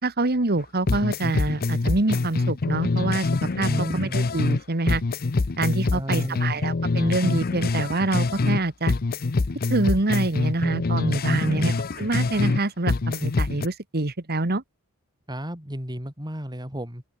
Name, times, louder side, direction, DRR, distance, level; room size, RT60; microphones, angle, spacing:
voice 1, 0.0-5.0 5.6-8.9 9.7-14.6, right 2 dB, 45° right, 1.7 m, -26 dB
sound 1, 0.6-0.7 0.9-4.6 4.9-8.6 8.9-12.6 12.9-13.7, left 3 dB, 45° left, 0.6 m, -25 dB
voice 2, 3.6-4.2 5.9-6.6 11.3-11.8 15.3-17.0, equal, 20° right, 5.8 m, -32 dB
open air
head